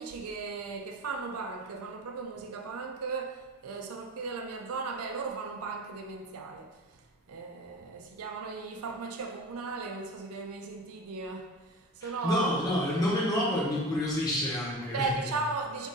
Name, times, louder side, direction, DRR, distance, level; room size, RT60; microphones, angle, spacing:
voice 1, 0.0-7.0 7.3-12.5 14.9-15.9, right 4 dB, 85° right, 3 dB, 0.5 m, -36 dB
voice 2, 12.0-15.1, left 1 dB, 15° left, -6 dB, 0.8 m, -28 dB
3.9 x 2.6 x 3.7 m, 1.3 s
head